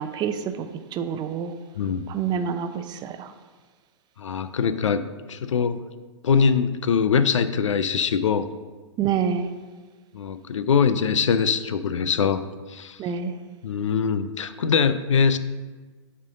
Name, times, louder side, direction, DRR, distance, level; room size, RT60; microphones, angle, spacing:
voice 1, 0.0-1.5 2.1-3.3 9.0-9.5 13.0-13.3, right 7 dB, 25° right, 9 dB, 0.6 m, -27 dB
voice 2, 1.8-2.1 4.2-5.8 6.2-8.5 10.1-12.4 12.7-13.0 13.6-15.4, left 6 dB, 85° left, 13 dB, 0.5 m, -22 dB
6.8 x 4.4 x 6.4 m, 1.4 s
hypercardioid pair, 115°, 16 cm